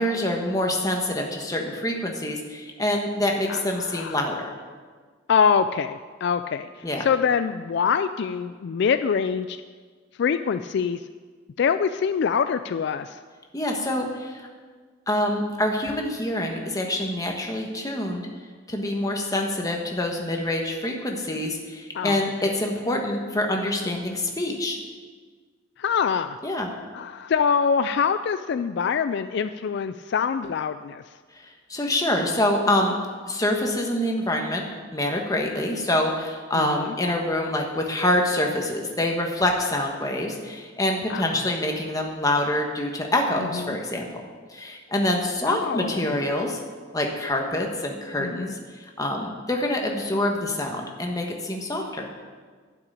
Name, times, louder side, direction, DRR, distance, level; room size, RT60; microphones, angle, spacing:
voice 1, 0.0-4.5 6.8-7.0 13.5-14.5 15.1-18.3 18.7-24.8 26.4-26.7 31.3-32.9 33.3-34.6 34.9-44.2 44.5-46.6 46.9-52.1, left 1 dB, 15° left, 1 dB, 1.4 m, -26 dB
voice 2, 3.5-4.2 5.3-6.7 7.0-9.6 10.2-11.0 11.6-13.2 21.9-22.3 25.8-26.4 26.9-31.0 36.5-36.9 41.1-41.4 43.7-43.8 45.5-46.1 48.2-48.5, left 6 dB, 60° left, 10 dB, 0.3 m, -24 dB
11.5 x 6.0 x 8.7 m, 1.5 s
head